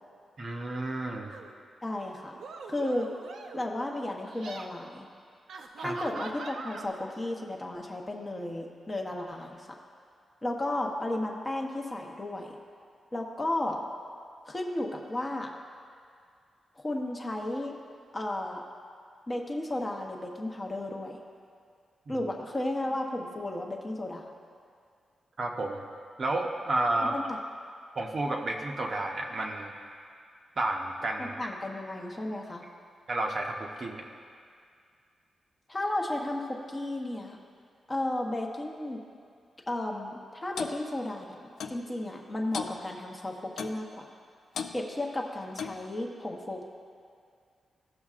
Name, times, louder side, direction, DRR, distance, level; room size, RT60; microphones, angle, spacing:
voice 1, 0.4-1.3 5.8-5.9 22.1-22.2 25.4-25.8 26.2-27.2 28.0-29.7 30.6-31.3 33.1-34.0, right 2 dB, 35° right, 1 dB, 0.7 m, -31 dB
sound 1, 1.3-1.6 2.3-3.7 4.2-4.7 5.5-6.9, right 4 dB, 75° right, 0.6 m, -42 dB
voice 2, 1.8-2.3 2.7-3.1 3.5-5.0 5.8-9.7 10.4-12.6 13.1-13.8 14.5-15.5 16.8-17.7 18.1-18.6 19.3-21.2 22.1-24.3 27.0-27.4 31.2-32.7 35.7-37.4 37.9-39.0 39.7-44.1 44.7-46.6, left 1 dB, 20° left, 1 dB, 0.7 m, -33 dB
Clock, 40.6-40.8 41.6-41.8 42.5-42.8 43.6-43.8 44.5-44.8 45.6-45.8, left 6 dB, 90° left, 0.5 m, -35 dB
16.5 x 6.4 x 2.4 m, 2.3 s
wide cardioid pair, 180°, 0 cm